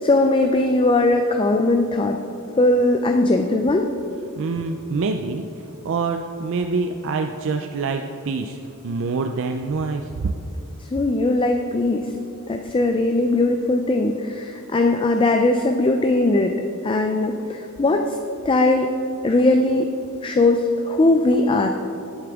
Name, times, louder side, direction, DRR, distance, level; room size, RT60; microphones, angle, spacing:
voice 1, 0.0-2.2 2.6-3.9 10.9-12.1 12.5-16.6 16.8-18.2 18.4-18.9 19.2-19.9 20.2-21.7, left 2 dB, 25° left, 4 dB, 0.4 m, -19 dB
voice 2, 4.4-5.5 5.8-8.6 8.8-10.1, right 4 dB, 65° right, 5 dB, 0.4 m, -25 dB
10.5 x 8.4 x 3.5 m, 2.8 s
head